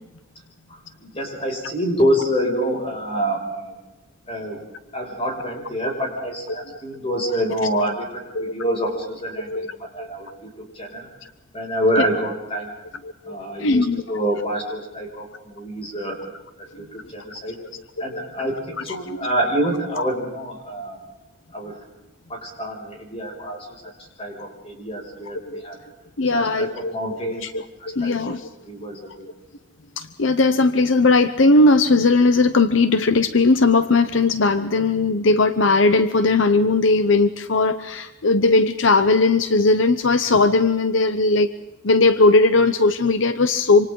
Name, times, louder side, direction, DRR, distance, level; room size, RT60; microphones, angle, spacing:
voice 1, 0.7-3.8 4.3-4.6 4.9-11.1 11.5-12.7 13.3-16.2 16.6-17.6 18.0-21.0 21.5-21.8 22.3-23.9 24.2-25.8 26.3-27.5 27.8-28.3 28.6-29.3, equal, 30° left, 0 dB, 6.5 m, -27 dB
voice 2, 13.3-14.2 18.1-18.2 19.1-19.2 25.5-25.7 26.2-26.9 27.2-27.5 27.9-28.5 30.0-41.5 41.8-43.9, left 3 dB, 75° left, 11 dB, 0.9 m, -18 dB
28.0 x 26.5 x 3.9 m, 1.0 s
head